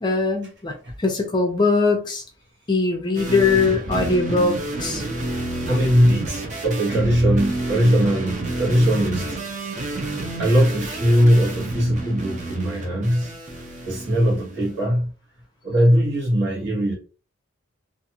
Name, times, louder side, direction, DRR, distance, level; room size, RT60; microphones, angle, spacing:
voice 1, 0.0-2.2 2.7-5.0, left 3 dB, 20° left, 0.4 m, -21 dB
sound 1, 3.1-14.7, right 2 dB, 35° right, 0.5 m, -29 dB
voice 2, 5.7-9.4 9.9-10.0 10.4-13.3 13.8-15.1 15.6-16.9, equal, 55° right, 1.2 m, -20 dB
2.5 x 2.4 x 2.8 m
head